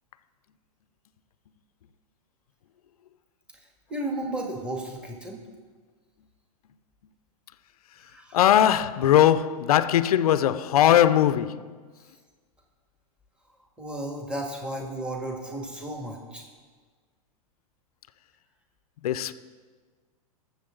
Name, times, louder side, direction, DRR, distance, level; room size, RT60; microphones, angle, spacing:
voice 1, 3.9-5.4 8.0-8.4 13.8-16.4, right 1 dB, 5° right, 2.0 m, -34 dB
voice 2, 8.3-11.7 19.0-19.3, left 11 dB, 75° left, 0.6 m, -20 dB
22.0 x 7.3 x 3.9 m
hypercardioid pair, 125°, 19 cm